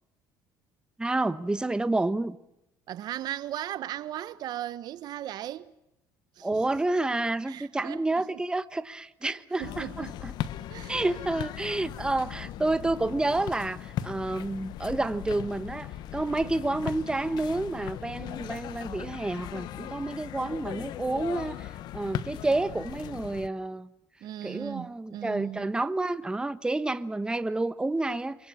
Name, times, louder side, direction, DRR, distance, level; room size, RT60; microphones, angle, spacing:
voice 1, 1.0-2.4 6.4-10.3 10.9-23.9 24.4-28.5, right 2 dB, 10° right, 1.2 m, -29 dB
voice 2, 2.9-5.7 6.4-6.6 7.5-8.0 8.3-8.4 9.6-10.2 10.7-11.2 24.2-25.7, right 12 dB, 60° right, 1.3 m, -37 dB
sound 1, 9.6-23.5, left 12 dB, 65° left, 1.2 m, -38 dB
26.5 x 24.5 x 7.4 m
cardioid pair, 100°, 8 cm